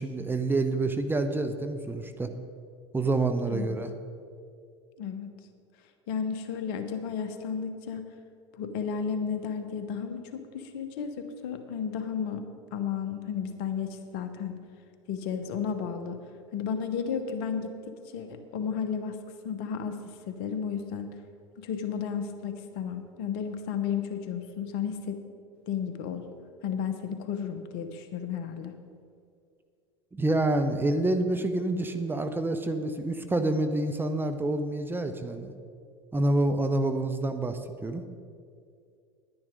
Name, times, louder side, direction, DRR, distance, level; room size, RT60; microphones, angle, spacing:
voice 1, 0.0-2.3 2.9-3.9 30.1-35.5 36.1-38.0, right 2 dB, 15° right, 7 dB, 0.8 m, -27 dB
voice 2, 5.0-5.3 6.1-8.1 8.5-12.4 12.7-14.6 15.1-16.2 16.5-19.2 19.4-21.1 21.6-25.2 25.7-26.3 26.6-28.7, left 7 dB, 60° left, 8 dB, 1.1 m, -33 dB
10.5 x 10.0 x 5.2 m, 2.3 s
hypercardioid pair, 80°, 15 cm